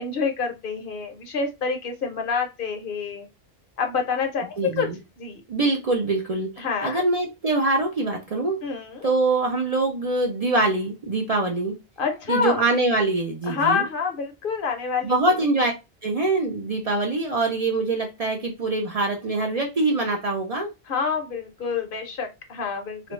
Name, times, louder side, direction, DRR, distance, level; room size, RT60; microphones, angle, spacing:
voice 1, 0.0-3.3 3.8-4.9 5.2-5.4 6.6-7.0 8.6-9.1 12.0-12.7 13.5-15.1 20.9-23.1, left 5 dB, 60° left, 0.8 m, -27 dB
voice 2, 4.6-5.0 5.5-6.5 6.8-8.6 9.0-11.7 12.3-13.8 15.0-15.7 16.0-20.7 23.0-23.1, right 2 dB, 50° right, 0.5 m, -24 dB
2.5 x 2.2 x 2.9 m
omnidirectional pair, 1.1 m